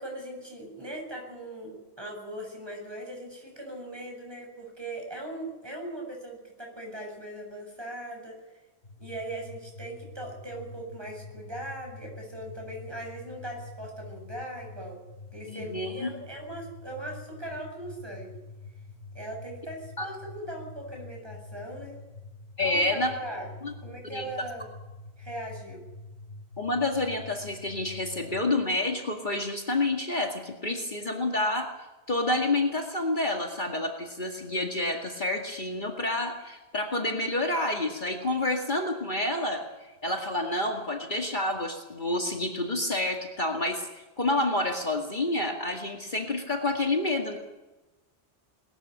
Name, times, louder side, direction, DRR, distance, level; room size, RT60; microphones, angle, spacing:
voice 1, 0.0-8.5 9.0-15.0 15.3-18.4 19.1-22.0 22.6-23.5 23.8-24.7 25.2-25.8, right 1 dB, 25° right, 1 dB, 7.4 m, -39 dB
sound 1, 8.8-28.4, left 3 dB, 75° left, 4.0 m, -46 dB
voice 2, 15.5-16.1 20.0-20.1 22.6-23.1 23.6-23.7 24.1-24.3 26.6-31.7 32.1-39.6 40.0-47.4, left 2 dB, 45° left, 2 dB, 2.3 m, -28 dB
20.5 x 14.5 x 9.9 m, 1.1 s
omnidirectional pair, 1.1 m